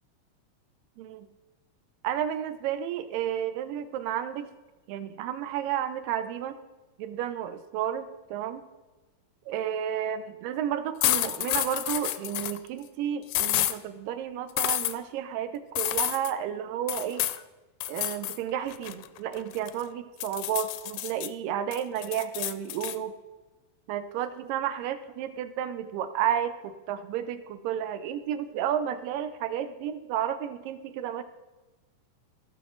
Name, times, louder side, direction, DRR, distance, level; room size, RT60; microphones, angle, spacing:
voice 1, 1.0-1.3 2.0-4.5 4.9-6.6 7.0-8.7 9.5-17.3 17.9-23.1 23.9-31.2, right 10 dB, 85° right, 11 dB, 2.4 m, -32 dB
sound 1, 11.0-12.6 13.3-13.8 14.6-14.9 15.8-16.3 16.9-17.4 17.8-18.4 18.7-19.8 20.2-21.3 21.7-23.0, left 15 dB, 80° left, 1.9 m, -29 dB
15.5 x 6.5 x 3.8 m, 1.2 s
omnidirectional pair, 3.8 m